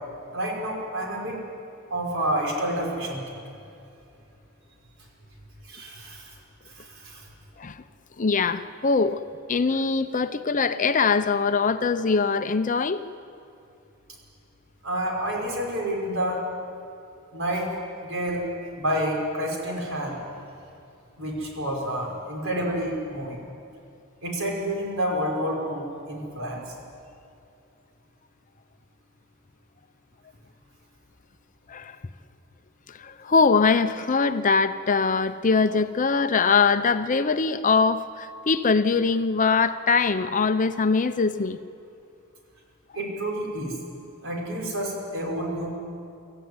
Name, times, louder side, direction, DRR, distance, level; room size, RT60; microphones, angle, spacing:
voice 1, 0.3-1.4 1.9-3.2 5.6-6.4 6.7-7.3 14.8-16.4 17.3-17.7 18.0-18.5 18.8-20.2 21.2-23.4 24.2-26.7 42.9-43.7 44.2-45.7, right 1 dB, 65° right, -1 dB, 5.6 m, -29 dB
voice 2, 8.2-9.2 9.5-13.0 31.7-32.0 32.9-41.6, left 4 dB, 40° left, 11 dB, 0.6 m, -22 dB
25.0 x 14.5 x 9.6 m, 2.6 s
head